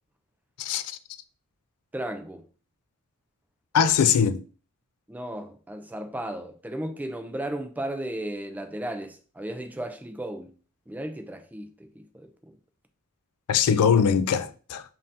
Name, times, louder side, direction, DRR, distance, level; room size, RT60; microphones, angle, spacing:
voice 1, 0.6-1.0 3.7-4.4 13.5-14.8, left 7 dB, 80° left, 0.3 m, -21 dB
voice 2, 1.9-2.4 3.8-3.9 5.1-10.5 10.9-11.7 12.0-12.5, right 1 dB, 5° right, 0.3 m, -35 dB
5.4 x 2.5 x 2.7 m
head